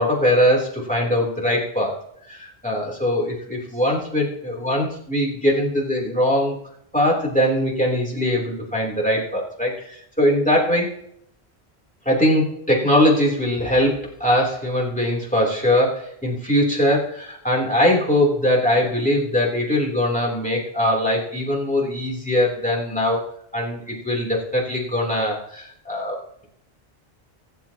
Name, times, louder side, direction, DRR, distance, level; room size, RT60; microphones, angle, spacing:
voice 1, 0.0-2.0 2.3-6.6 6.9-10.9 12.0-23.2 23.5-26.2, left 1 dB, 5° left, -3 dB, 3.4 m, -21 dB
24.5 x 8.3 x 3.0 m, 0.71 s
omnidirectional pair, 1.1 m